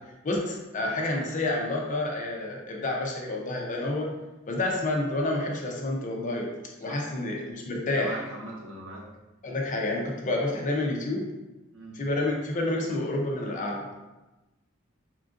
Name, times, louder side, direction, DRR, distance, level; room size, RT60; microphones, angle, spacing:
voice 1, 0.2-4.1 4.5-6.5 6.8-8.2 9.4-11.3 11.9-13.9, left 2 dB, 40° left, -1 dB, 0.5 m, -29 dB
voice 2, 6.8-7.2 7.9-9.1 11.7-12.0, right 1 dB, 85° right, -3 dB, 0.8 m, -41 dB
3.6 x 2.4 x 2.4 m, 1.1 s
head